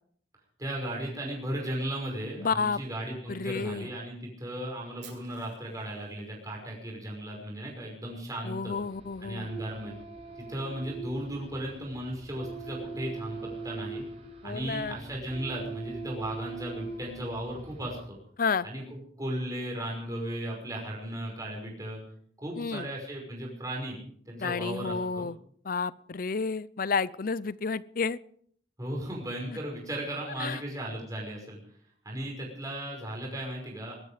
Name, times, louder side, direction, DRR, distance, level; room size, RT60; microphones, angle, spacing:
voice 1, 0.6-8.8 9.2-9.9 10.4-14.0 14.4-18.2 18.6-22.0 22.4-24.0 24.3-25.3 28.8-31.6 32.0-33.9, right 1 dB, 20° right, -1 dB, 5.5 m, -36 dB
voice 2, 2.4-2.8 3.3-3.9 8.4-9.5 14.4-15.0 18.4-18.7 22.6-22.9 24.4-25.4 25.6-28.2 29.5-29.6 30.4-30.6, left 5 dB, 50° left, 19 dB, 0.6 m, -31 dB
Fire, 5.0-7.1, right 9 dB, 75° right, 6.3 m, -54 dB
sound 1, 8.8-18.1, right 4 dB, 35° right, 5.0 m, -42 dB
20.5 x 13.0 x 5.0 m, 0.62 s
head